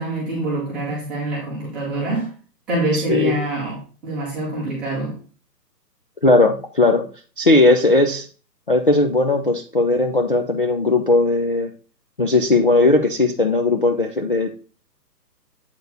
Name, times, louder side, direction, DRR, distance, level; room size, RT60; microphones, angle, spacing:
voice 1, 0.0-2.3 2.7-5.2, right 1 dB, ahead, -9 dB, 0.7 m, -25 dB
voice 2, 2.9-3.4 6.2-7.1 7.4-8.3 8.7-11.7 12.2-14.5, left 2 dB, 35° left, 2 dB, 0.4 m, -17 dB
8.0 x 4.4 x 3.8 m, 0.37 s
hypercardioid pair, 155°, 50 cm